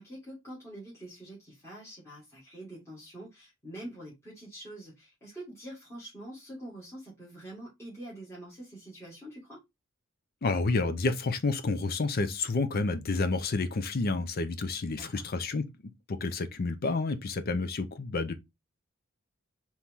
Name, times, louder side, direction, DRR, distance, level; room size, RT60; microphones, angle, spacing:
voice 1, 0.0-9.6 15.0-15.3, right 1 dB, 15° left, 1.9 m, -45 dB
voice 2, 10.4-15.6 16.1-18.3, left 3 dB, 45° left, 0.5 m, -29 dB
4.3 x 3.0 x 3.6 m
head